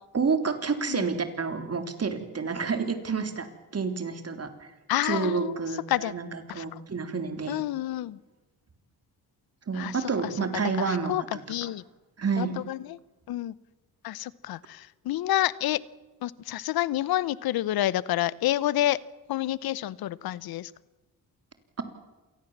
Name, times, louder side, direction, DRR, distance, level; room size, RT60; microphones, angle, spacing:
voice 1, 0.1-3.5 3.7-4.7 5.0-7.6 9.7-11.7 12.2-12.6, right 5 dB, 40° right, 8 dB, 3.5 m, -29 dB
voice 2, 4.9-5.5 5.9-6.1 6.5-6.8 7.5-8.2 9.7-9.9 10.8-11.2 11.5-11.8 12.4-13.0 13.3-13.5 14.0-15.8 16.2-19.0 19.3-20.7, left 14 dB, 80° left, 21 dB, 0.8 m, -28 dB
27.0 x 19.0 x 7.3 m, 1.1 s
cardioid pair, 75°, 36 cm